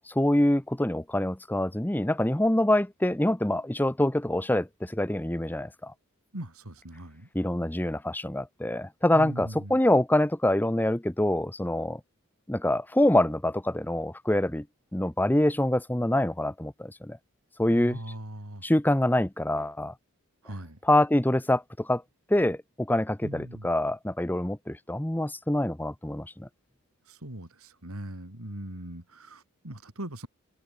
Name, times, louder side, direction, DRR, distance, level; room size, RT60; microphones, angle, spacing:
voice 1, 0.1-5.9 7.3-12.0 12.5-14.6 14.9-17.2 17.6-18.0 18.6-19.9 20.8-22.0 22.3-26.5, left 1 dB, 10° left, 0.8 m, -25 dB
voice 2, 6.3-7.3 9.1-9.8 17.7-18.7 20.4-20.8 23.2-23.7 27.1-30.3, right 1 dB, 80° right, 4.8 m, -40 dB
open air
head